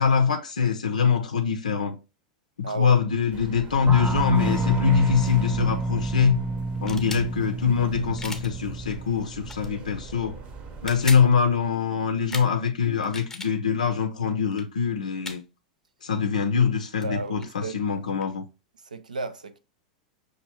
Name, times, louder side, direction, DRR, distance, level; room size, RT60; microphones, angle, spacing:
voice 1, 0.0-2.0 2.6-6.4 6.8-10.4 10.8-15.4 16.0-18.4, left 6 dB, 75° left, 0.5 m, -23 dB
voice 2, 2.6-3.0 17.0-17.7 18.8-19.6, right 4 dB, 80° right, 0.5 m, -33 dB
sound 1, 3.3-11.3, right 4 dB, 35° right, 0.8 m, -41 dB
sound 2, 3.9-10.2, right 2 dB, 10° right, 0.4 m, -29 dB
sound 3, 6.7-7.3 8.2-8.5 9.4-9.7 10.7-11.3 12.3-12.5 13.0-13.5 14.5-14.6 15.2-15.4 16.8-16.9 17.0-18.3, left 3 dB, 10° left, 0.8 m, -37 dB
6.0 x 2.6 x 2.9 m
figure-of-eight pair, 90°, 4 cm